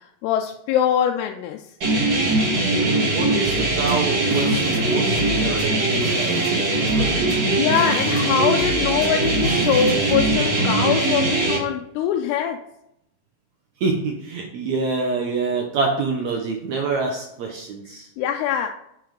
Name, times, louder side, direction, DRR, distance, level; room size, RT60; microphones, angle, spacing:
voice 1, 0.0-1.7 7.6-12.6 18.2-18.7, left 9 dB, 90° left, 3 dB, 2.6 m, -23 dB
sound 1, 1.8-11.6, right 2 dB, 40° right, 1.7 m, -21 dB
voice 2, 2.7-7.2 13.8-18.1, right 4 dB, 85° right, 2 dB, 1.6 m, -27 dB
sound 2, 3.4-10.3, equal, 15° right, 0.7 m, -35 dB
8.3 x 5.7 x 5.2 m, 0.79 s
omnidirectional pair, 4.6 m